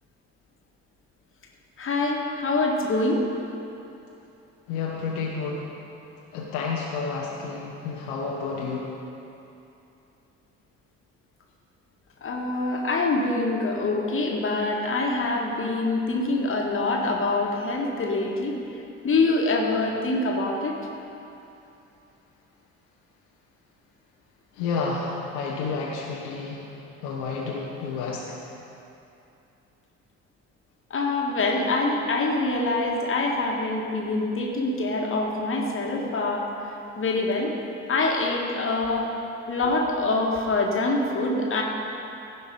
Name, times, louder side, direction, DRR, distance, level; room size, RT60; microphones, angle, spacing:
voice 1, 1.8-3.2 12.2-18.6 19.0-20.8 30.9-36.5 37.0-37.5 37.9-39.1 39.5-41.6, left 2 dB, 35° left, 0 dB, 1.7 m, -25 dB
voice 2, 4.7-5.7 6.3-8.9 24.6-26.6 27.0-28.5, left 4 dB, 65° left, -3 dB, 1.2 m, -30 dB
16.0 x 5.4 x 5.3 m, 2.8 s
figure-of-eight pair, 50°, 38 cm